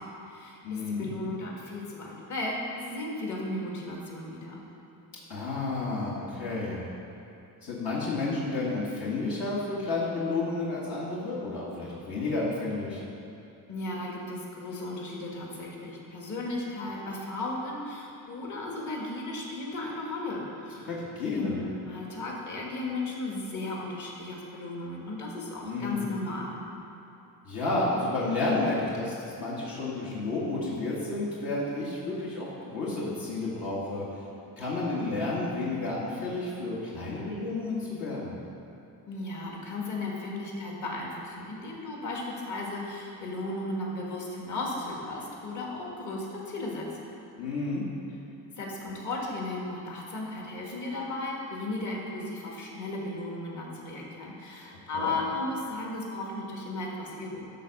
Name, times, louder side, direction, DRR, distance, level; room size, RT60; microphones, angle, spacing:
voice 1, 0.0-4.6 13.7-20.9 21.3-26.6 39.1-46.9 48.6-57.4, left 2 dB, 50° left, -3 dB, 2.0 m, -35 dB
voice 2, 0.6-1.1 5.3-6.8 7.6-13.0 20.8-21.6 25.6-26.0 27.4-34.1 34.6-38.4 47.4-47.8 54.9-55.2, left 2 dB, 70° left, -7 dB, 2.2 m, -31 dB
12.0 x 4.2 x 6.8 m, 2.9 s
cardioid pair, 120°, 37 cm